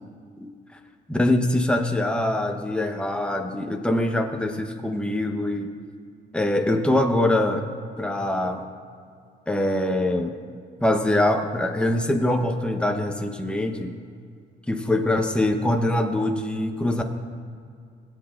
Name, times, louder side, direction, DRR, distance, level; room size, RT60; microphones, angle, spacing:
voice 1, 1.1-5.7 6.3-7.6 8.0-8.6 9.5-10.4 10.8-13.9 14.7-17.0, left 1 dB, 5° left, 4 dB, 0.9 m, -23 dB
19.5 x 8.2 x 2.5 m, 2.2 s
cardioid pair, 90°, 20 cm